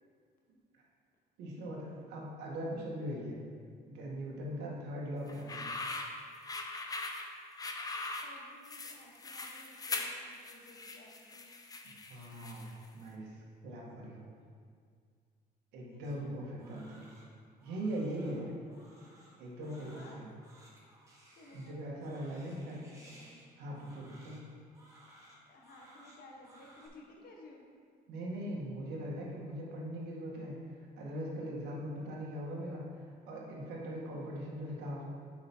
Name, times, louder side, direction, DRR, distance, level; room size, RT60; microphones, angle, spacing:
voice 1, 1.4-3.4 3.9-5.7 11.8-14.2 15.7-17.0 17.6-18.4 19.4-20.3 21.5-22.8 23.6-24.4 28.1-30.6 31.0-32.8 33.3-35.0, right 1 dB, 85° right, -4 dB, 1.6 m, -40 dB
voice 2, 4.3-4.7 8.2-11.5 15.8-16.4 18.2-18.8 19.6-20.2 21.3-23.4 25.5-27.7, left 2 dB, 60° left, -1 dB, 1.4 m, -56 dB
sound 1, 5.3-12.8, left 3 dB, 20° left, 0.6 m, -41 dB
Crying sobbing, 16.0-26.9, right 1 dB, 20° right, 1.7 m, -60 dB
7.7 x 5.0 x 4.5 m, 2.1 s
cardioid pair, 110°, 17 cm